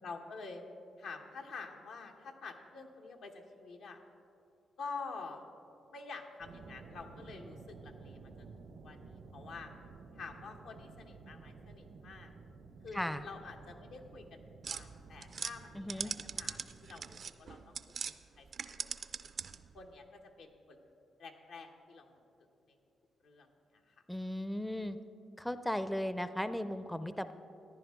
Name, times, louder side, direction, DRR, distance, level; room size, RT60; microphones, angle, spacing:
voice 1, 0.0-0.6 1.0-4.0 4.8-5.5 5.9-8.5 8.8-9.7 10.2-12.3 12.8-14.4 14.7-17.8 18.4-18.5 18.8-18.9 19.7-20.8 21.2-22.1 23.2-23.5 23.7-23.9, left 4 dB, 85° left, 2 dB, 1.0 m, -48 dB
sound 1, 6.4-17.3, right 4 dB, 85° right, 0.8 m, -53 dB
voice 2, 12.9-13.2 15.7-16.1 24.1-25.0 25.4-27.3, left 1 dB, 5° left, 12 dB, 0.4 m, -36 dB
sound 2, 14.6-18.2 18.5-19.7, right 6 dB, 60° right, 0.4 m, -41 dB
14.0 x 10.5 x 3.6 m, 2.8 s
cardioid pair, 70°, 0 cm